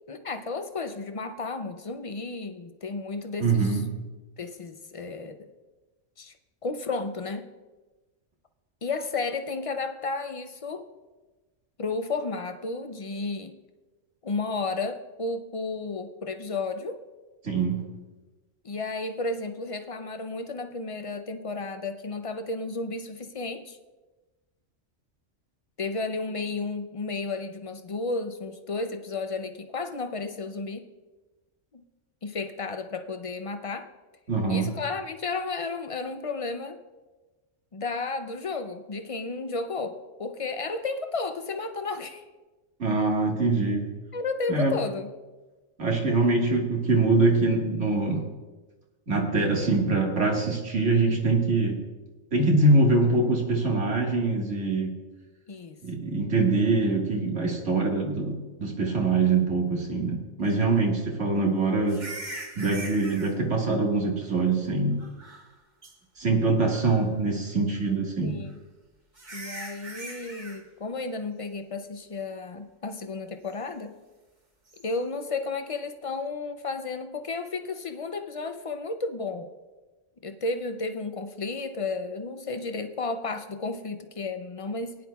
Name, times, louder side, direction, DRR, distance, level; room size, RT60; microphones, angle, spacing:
voice 1, 0.1-3.8 4.4-5.4 6.2-6.3 6.6-7.5 8.8-10.9 11.8-13.6 14.2-17.0 18.6-23.8 25.8-30.8 31.7-31.8 32.2-33.9 34.5-36.8 37.7-42.3 44.1-45.1 55.5-55.8 60.4-60.6 68.2-68.5 69.3-74.0 74.8-79.5 80.2-85.1, left 3 dB, 45° left, 8 dB, 0.4 m, -33 dB
voice 2, 3.4-3.9 17.4-17.8 34.3-34.7 42.8-43.9 44.5-44.7 45.8-48.2 49.1-51.8 52.3-55.0 55.8-62.0 62.6-65.0 66.2-68.4, right 3 dB, 75° right, -1 dB, 2.0 m, -24 dB
sound 1, 61.9-63.3 65.0-65.5 65.8-65.9 66.6-67.1 68.5-68.6 69.2-70.6 74.7-74.9, right 2 dB, 40° right, 1.5 m, -41 dB
19.0 x 10.5 x 2.3 m, 1.2 s
omnidirectional pair, 1.3 m